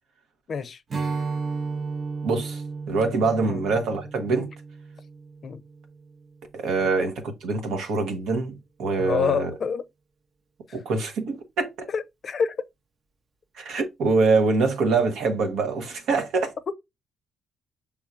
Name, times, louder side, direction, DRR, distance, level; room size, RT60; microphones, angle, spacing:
voice 1, 0.5-0.8 3.5-3.6 5.4-5.6 6.8-6.9 9.0-9.8 11.9-12.6 16.7-16.8, left 6 dB, 50° left, 0.5 m, -27 dB
Strum, 0.9-6.3, right 4 dB, 45° right, 0.6 m, -34 dB
voice 2, 2.2-2.6 2.9-4.5 6.5-9.5 10.7-11.9 13.6-16.5, right 3 dB, 80° right, 0.9 m, -24 dB
6.0 x 3.5 x 2.4 m
cardioid pair, 90°, 0 cm